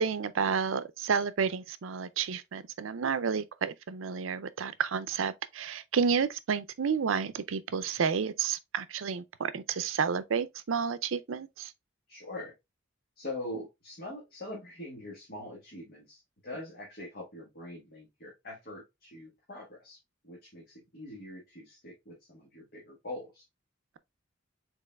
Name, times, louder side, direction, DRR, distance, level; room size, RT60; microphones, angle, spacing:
voice 1, 0.0-11.7, right 6 dB, 80° right, 0.5 m, -30 dB
voice 2, 12.1-12.5 13.2-23.4, left 1 dB, 50° left, 1.5 m, -43 dB
5.3 x 4.0 x 2.3 m
head